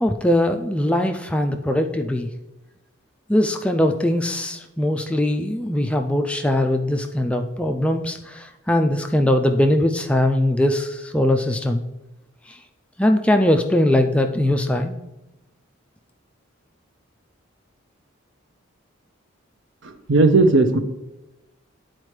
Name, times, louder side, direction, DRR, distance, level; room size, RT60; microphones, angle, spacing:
voice 1, 0.0-2.3 3.3-11.8 12.5-12.6 13.0-15.0, left 1 dB, 5° left, 4 dB, 0.3 m, -21 dB
voice 2, 19.8-20.8, right 3 dB, 65° right, 8 dB, 0.7 m, -16 dB
11.0 x 4.3 x 3.2 m, 0.96 s
head